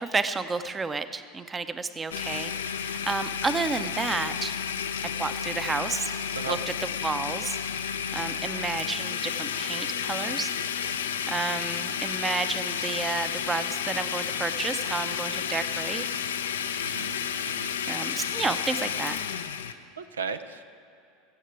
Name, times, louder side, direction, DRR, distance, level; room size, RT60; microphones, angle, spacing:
voice 1, 0.0-4.5 5.0-6.1 6.5-6.6 7.0-7.6 8.1-10.5 11.3-16.0 17.9-19.2, right 4 dB, 20° right, 11 dB, 0.7 m, -31 dB
Domestic sounds home sounds, 2.1-19.7, left 8 dB, 75° left, 0.5 m, -31 dB
voice 2, 16.8-17.2 17.4-17.7 19.7-20.6, right 5 dB, 80° right, 9 dB, 0.6 m, -36 dB
20.5 x 8.2 x 4.6 m, 2.7 s
figure-of-eight pair, 80°, 0 cm